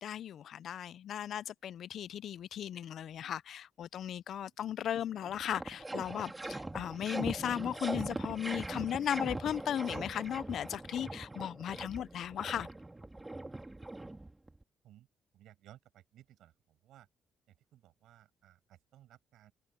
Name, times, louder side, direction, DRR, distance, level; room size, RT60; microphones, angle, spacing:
voice 1, 0.0-12.7, left 10 dB, 65° left, 0.4 m, -36 dB
sound 1, 4.9-5.0 5.2-14.6, right 2 dB, 15° right, 2.3 m, -41 dB
voice 2, 15.3-17.1 17.7-19.5, right 13 dB, 80° right, 7.8 m, -59 dB
cardioid pair, 90°, 0 cm